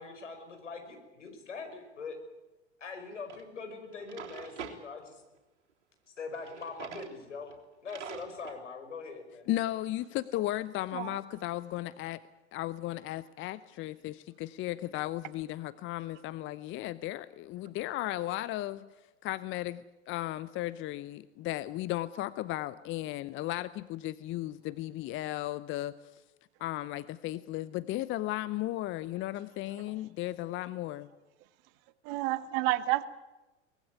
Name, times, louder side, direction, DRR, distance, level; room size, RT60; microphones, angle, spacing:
voice 1, 0.0-2.2 2.8-5.2 6.1-7.5 7.8-9.5, left 4 dB, 80° left, 6 dB, 5.3 m, -42 dB
Drawer open or close, 3.3-3.4 3.9-4.8 6.4-7.1 7.5-7.6 7.9-8.6, right 8 dB, 75° right, 3.6 m, -44 dB
voice 2, 9.5-12.2 12.5-18.9 19.2-25.9 26.6-31.1, left 15 dB, 35° left, 16 dB, 0.8 m, -35 dB
voice 3, 32.0-33.0, right 16 dB, 50° right, 13 dB, 1.7 m, -29 dB
23.5 x 20.0 x 9.6 m, 1.1 s
figure-of-eight pair, 85°, 36 cm